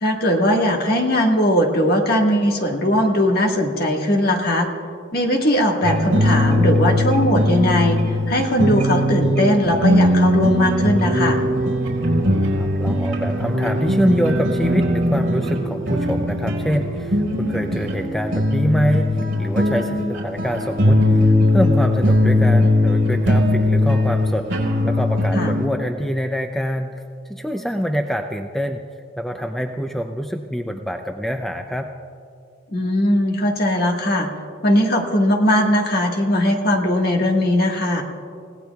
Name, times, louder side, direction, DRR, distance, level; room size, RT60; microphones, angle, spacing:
voice 1, 0.0-4.7 5.1-8.0 8.3-11.4 25.3-25.6 32.7-34.3 34.6-38.0, left 1 dB, 50° left, 1 dB, 1.6 m, -19 dB
sound 1, 5.8-25.7, left 1 dB, 70° right, 4.0 m, -19 dB
voice 2, 12.5-27.0 27.3-28.8 29.2-31.9, equal, ahead, 4 dB, 0.4 m, -25 dB
30.0 x 17.0 x 2.3 m, 2.4 s
head